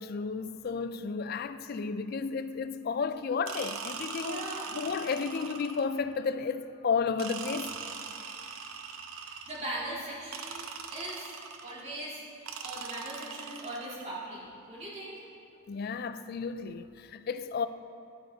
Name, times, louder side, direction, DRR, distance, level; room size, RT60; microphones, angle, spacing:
voice 1, 0.0-7.8 15.7-17.7, left 5 dB, 50° left, 0.4 m, -32 dB
sound 1, 3.5-6.0 7.2-9.8 10.3-11.9 12.5-14.1, right 6 dB, 85° right, 0.7 m, -41 dB
voice 2, 4.1-4.7 9.1-11.3 11.6-12.2 12.6-14.4 14.7-15.2, right 1 dB, 30° right, 2.3 m, -40 dB
11.5 x 7.9 x 4.0 m
head